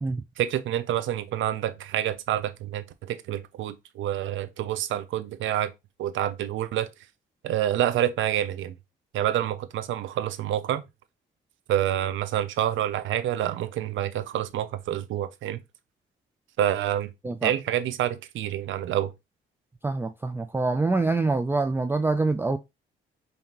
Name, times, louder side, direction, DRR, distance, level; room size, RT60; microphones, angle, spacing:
voice 1, 0.4-5.7 6.0-6.9 7.4-8.7 9.1-10.8 11.7-15.6 16.6-17.1 17.4-19.1, right 11 dB, 75° right, 0.6 m, -27 dB
voice 2, 19.8-22.6, right 3 dB, 10° right, 0.3 m, -25 dB
5.2 x 2.7 x 2.9 m
cardioid pair, 90°, 20 cm